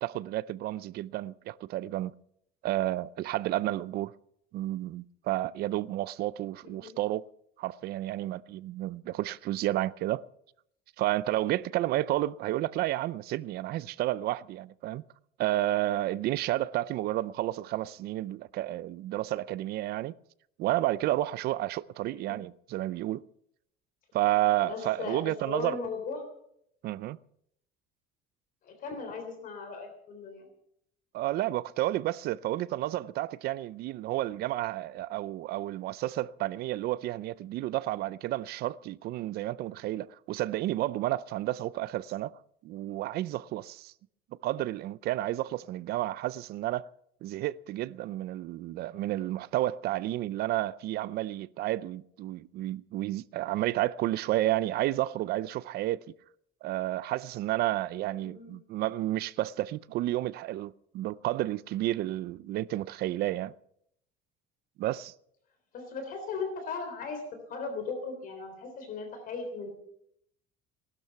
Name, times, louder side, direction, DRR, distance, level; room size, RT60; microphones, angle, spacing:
voice 1, 0.0-2.1 2.6-4.1 4.5-7.2 7.6-10.2 11.0-15.0 15.4-20.1 20.6-23.2 24.1-25.8 26.8-27.2 31.1-42.3 42.6-43.9 44.4-46.9 47.2-56.1 56.6-63.5 64.8-65.1, right 15 dB, 55° right, 0.5 m, -31 dB
voice 2, 6.6-7.0 22.1-22.4 24.6-26.2 28.6-30.5 58.2-58.5 65.7-67.2 67.5-69.7, left 4 dB, 45° left, 3.5 m, -37 dB
18.5 x 12.5 x 5.8 m
cardioid pair, 160°, 20 cm